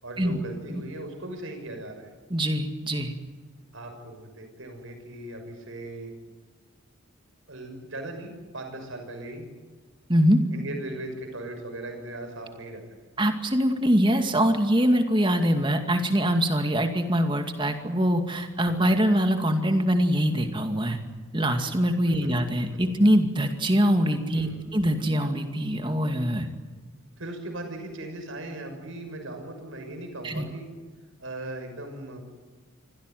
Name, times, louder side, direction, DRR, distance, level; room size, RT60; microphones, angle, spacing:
voice 1, 0.0-2.1 3.7-6.1 7.5-9.5 10.5-12.8 18.7-18.9 22.2-22.3 22.8-23.0 24.3-24.7 27.2-30.7 31.2-32.2, right 1 dB, 65° right, 5 dB, 6.2 m, -38 dB
voice 2, 2.3-3.1 10.1-10.4 13.2-21.0 21.3-26.5 30.2-30.5, equal, 20° right, 6 dB, 2.2 m, -23 dB
25.5 x 16.5 x 9.4 m, 1.4 s
head